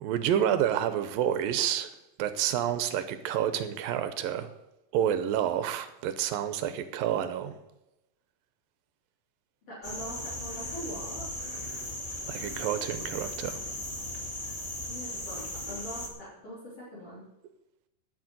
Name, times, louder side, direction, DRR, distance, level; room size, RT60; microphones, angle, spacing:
voice 1, 0.0-1.9 2.2-4.5 4.9-7.6 11.7-11.8 12.3-13.6, right 10 dB, 75° right, 11 dB, 2.5 m, -29 dB
voice 2, 9.7-11.3 14.9-17.3, equal, 40° left, -8 dB, 4.3 m, -42 dB
sound 1, 9.8-16.1, left 1 dB, 25° left, 0.8 m, -37 dB
10.5 x 6.9 x 9.0 m, 0.91 s
omnidirectional pair, 4.3 m